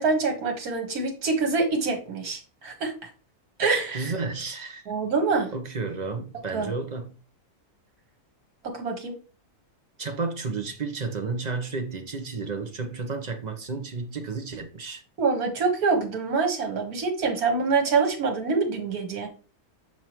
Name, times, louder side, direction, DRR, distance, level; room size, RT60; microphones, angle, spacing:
voice 1, 0.0-2.9 3.6-4.1 4.9-5.5 6.5-6.7 8.6-9.1 15.2-19.3, right 4 dB, 70° right, 2.0 m, -25 dB
voice 2, 3.9-4.8 5.5-7.1 10.0-15.0, right 4 dB, 35° right, 0.8 m, -32 dB
5.9 x 5.4 x 3.1 m
omnidirectional pair, 1.6 m